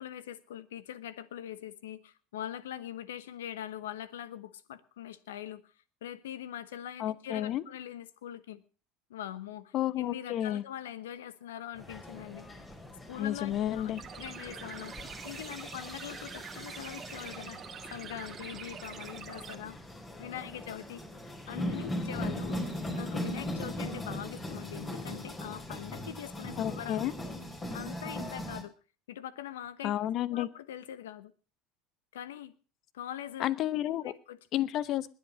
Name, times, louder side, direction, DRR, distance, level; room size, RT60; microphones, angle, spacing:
voice 1, 0.0-5.7 6.0-8.6 9.1-12.5 13.1-17.6 17.9-19.8 20.2-21.0 21.5-22.6 22.9-27.1 27.7-28.7 29.1-29.9 30.3-31.3 32.1-32.5 32.9-33.5 33.8-33.9 34.3-34.4, left 11 dB, 80° left, 17 dB, 1.0 m, -42 dB
voice 2, 7.0-7.6 9.7-10.6 13.2-14.0 26.6-27.1 29.8-30.5 33.4-34.1 34.5-35.1, left 12 dB, 50° left, 19 dB, 0.9 m, -31 dB
sound 1, 11.7-25.8, equal, 5° left, 2.7 m, -52 dB
sound 2, 11.8-28.6, left 1 dB, 25° left, 4.2 m, -40 dB
sound 3, 14.0-19.5, right 8 dB, 40° right, 1.5 m, -45 dB
20.5 x 8.2 x 6.2 m, 0.38 s
hypercardioid pair, 75°, 0 cm